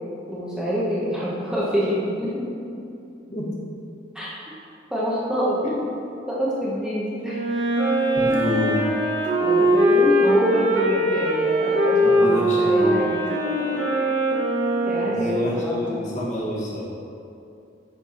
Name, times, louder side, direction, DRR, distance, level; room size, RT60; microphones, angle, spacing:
voice 1, 0.3-2.5 4.1-4.3 4.9-5.6 6.3-7.4 9.4-13.8 14.8-15.8, equal, 5° right, -8 dB, 1.1 m, -26 dB
Wind instrument woodwind instrument, 7.2-15.6, equal, 90° right, 1.8 m, -21 dB
voice 2, 8.2-8.8 12.0-12.9 15.0-16.8, left 1 dB, 40° left, -6 dB, 1.7 m, -28 dB
9.5 x 4.6 x 4.4 m, 2.6 s
head